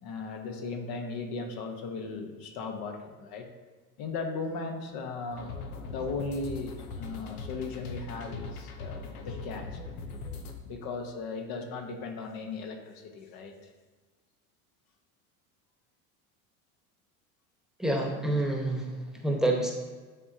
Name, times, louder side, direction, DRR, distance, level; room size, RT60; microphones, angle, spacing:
voice 1, 0.0-3.5 4.0-9.8 10.6-13.7, left 4 dB, 55° left, 4 dB, 1.2 m, -37 dB
sound 1, 5.3-10.5, left 3 dB, 85° left, 0.9 m, -40 dB
voice 2, 17.8-19.7, right 1 dB, ahead, 1 dB, 1.1 m, -28 dB
10.5 x 3.7 x 2.8 m, 1.4 s
hypercardioid pair, 80°, 43 cm